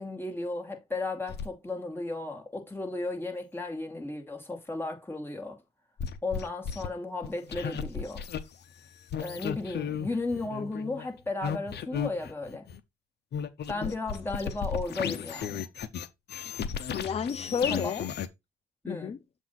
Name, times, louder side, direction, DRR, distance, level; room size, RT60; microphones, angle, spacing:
voice 1, 0.0-5.6 6.2-8.2 9.2-12.7 13.7-15.7 17.7-17.8 18.8-19.2, left 2 dB, 10° left, 2.2 m, -34 dB
sound 1, 1.3-1.5 6.0-6.9 7.2-8.4 9.1-12.8 13.3-18.3, left 7 dB, 55° left, 0.8 m, -34 dB
voice 2, 16.5-18.1 18.9-19.2, left 7 dB, 30° left, 0.4 m, -32 dB
7.3 x 2.7 x 5.7 m
cardioid pair, 90°, 20 cm